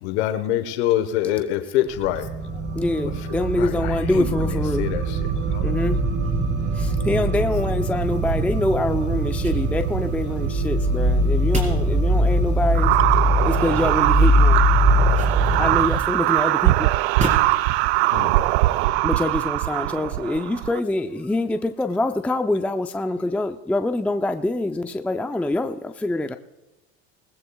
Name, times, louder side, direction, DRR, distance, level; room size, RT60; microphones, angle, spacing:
voice 1, 0.0-2.3 3.6-5.2 5.5-5.7 11.7-11.9 18.1-18.3, left 12 dB, 85° left, 9 dB, 1.2 m, -25 dB
sound 1, 2.0-16.0, right 1 dB, 50° right, 3.6 m, -22 dB
voice 2, 2.7-4.9 5.6-6.0 6.8-13.0 13.4-14.6 15.6-16.9 19.0-26.3, left 2 dB, 5° left, 7 dB, 0.5 m, -25 dB
sound 2, 8.0-18.9, right 2 dB, 20° right, 4.2 m, -37 dB
sound 3, 12.7-20.8, right 18 dB, 80° right, 0.5 m, -21 dB
voice 3, 17.3-19.0, left 9 dB, 40° left, 4 dB, 2.6 m, -52 dB
19.5 x 16.5 x 2.3 m, 1.1 s
supercardioid pair, 100°, 32 cm